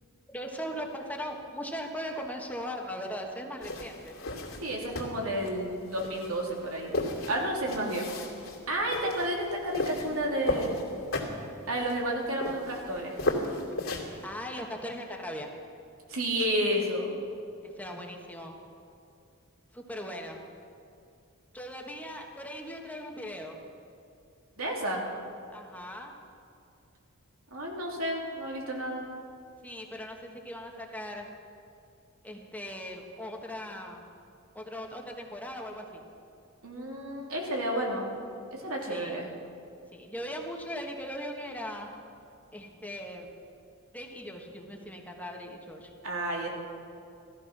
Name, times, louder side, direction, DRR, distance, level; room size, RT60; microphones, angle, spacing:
voice 1, 0.3-4.2 14.2-15.5 17.6-18.5 19.7-20.4 21.5-23.6 25.5-26.1 29.6-31.3 32.2-34.0 34.5-36.0 38.9-39.2 39.9-41.9 42.5-43.4 43.9-45.9, equal, 5° left, 2 dB, 1.3 m, -39 dB
sound 1, 3.6-14.2, left 2 dB, 70° left, 2.5 m, -35 dB
voice 2, 4.6-7.0 7.3-8.2 8.7-10.9 11.7-13.2 16.1-17.1 24.6-25.1 27.5-29.0 36.6-38.1 38.5-39.3 46.0-46.5, right 1 dB, 90° right, -1 dB, 3.0 m, -31 dB
16.0 x 14.0 x 6.0 m, 2.6 s
head